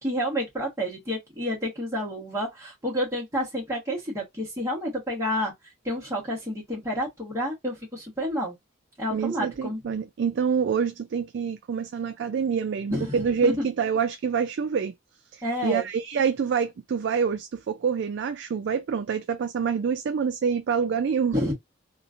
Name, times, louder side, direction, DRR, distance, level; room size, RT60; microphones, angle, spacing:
voice 1, 0.0-5.5 5.8-8.5 9.0-9.8 12.9-13.2 13.4-13.6 15.4-15.9 21.3-21.5, equal, 15° right, 1.2 m, -29 dB
voice 2, 9.1-14.9 15.3-21.4, right 6 dB, 60° right, 0.3 m, -26 dB
3.0 x 2.4 x 2.4 m
head